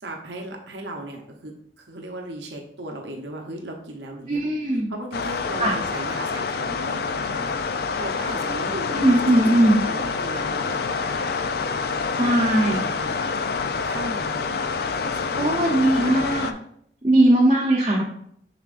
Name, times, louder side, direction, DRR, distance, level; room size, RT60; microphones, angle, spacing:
voice 1, 0.0-9.2 9.5-11.8 12.1-13.3 13.5-13.6 13.9-16.2, right 1 dB, 70° right, 1 dB, 0.8 m, -37 dB
voice 2, 4.3-4.9 5.6-5.7 8.9-9.8 12.2-12.8 15.3-16.5 17.0-18.0, right 1 dB, 30° right, -4 dB, 0.8 m, -19 dB
sound 1, 5.1-16.5, left 5 dB, 55° left, 0.4 m, -27 dB
7.1 x 5.9 x 2.5 m, 0.68 s
head